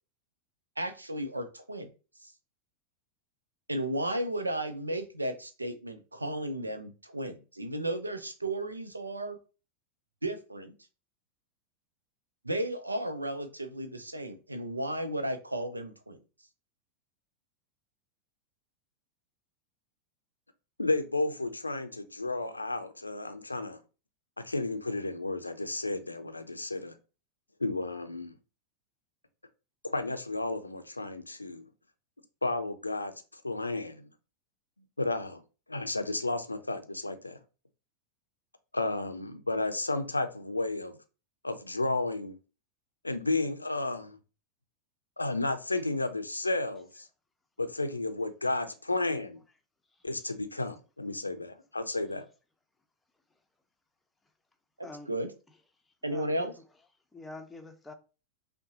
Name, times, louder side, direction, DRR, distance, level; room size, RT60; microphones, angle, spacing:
voice 1, 0.8-1.9 2.2-2.3 3.7-9.4 10.2-10.7 12.4-16.2 54.8-55.3 56.0-56.5, right 1 dB, 80° right, 0.6 m, -34 dB
voice 2, 20.8-23.8 24.4-27.0 27.6-28.3 29.8-31.7 32.4-34.1 35.0-35.4 35.7-37.4 38.7-41.0 41.4-42.4 43.0-44.2 45.2-47.1 47.6-49.4 50.0-52.2, left 2 dB, 80° left, 0.5 m, -32 dB
voice 3, 54.8-55.2 56.1-57.9, left 3 dB, 10° left, 0.6 m, -47 dB
5.4 x 2.2 x 2.8 m
figure-of-eight pair, 90°, 0 cm